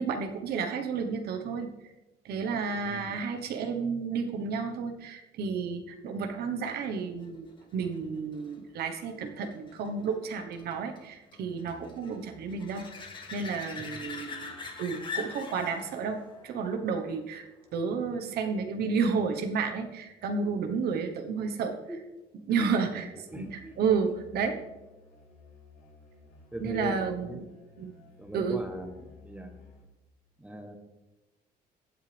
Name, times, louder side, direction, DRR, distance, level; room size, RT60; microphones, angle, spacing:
voice 1, 0.0-1.9 2.2-7.4 7.7-12.9 13.3-17.5 17.7-21.7 22.5-23.1 23.3-24.6 26.6-27.5 27.8-27.9 28.3-28.6, right 5 dB, 70° right, 5 dB, 1.3 m, -31 dB
voice 2, 2.8-3.1 13.9-14.2 21.7-22.0 22.5-23.7 24.0-24.1 26.5-27.5 28.2-29.5 30.4-30.8, equal, 10° right, 4 dB, 1.2 m, -40 dB
sound 1, 6.9-18.2 23.9-24.0, left 4 dB, 30° left, 2.2 m, -44 dB
Musical instrument, 23.3-30.1, left 4 dB, 80° left, 3.9 m, -55 dB
16.0 x 9.0 x 3.5 m, 1.0 s
cardioid pair, 110°, 17 cm